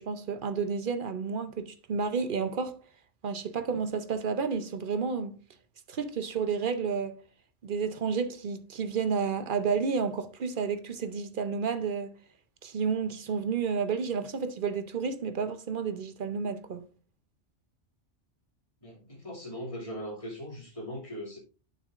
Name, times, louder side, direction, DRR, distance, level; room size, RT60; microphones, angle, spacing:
voice 1, 0.0-2.8 3.2-5.4 5.9-7.2 7.6-12.1 12.6-16.8, right 5 dB, 50° right, 0.8 m, -31 dB
voice 2, 18.8-21.4, equal, 25° left, 2.5 m, -39 dB
9.3 x 6.7 x 2.5 m
omnidirectional pair, 1.2 m